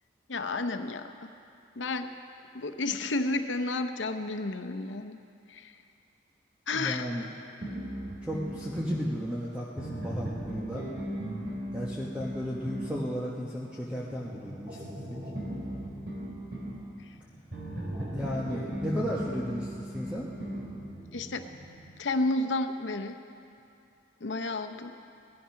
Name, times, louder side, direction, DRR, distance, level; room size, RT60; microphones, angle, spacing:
voice 1, 0.3-1.3 1.8-2.1 2.5-5.2 5.5-5.7 6.7-7.1 21.1-21.5 22.0-23.2 24.2-24.9, left 2 dB, 90° left, 7 dB, 0.8 m, -31 dB
voice 2, 6.7-7.3 8.2-10.9 11.7-15.2 18.1-20.3, equal, 5° right, -6 dB, 1.1 m, -34 dB
sound 1, 7.6-9.0 9.8-13.0 15.4-16.8 17.5-20.7, right 1 dB, 65° right, 4.2 m, -37 dB
sound 2, 14.0-21.9, right 1 dB, 25° right, 1.7 m, -46 dB
18.0 x 12.5 x 5.8 m, 2.6 s
head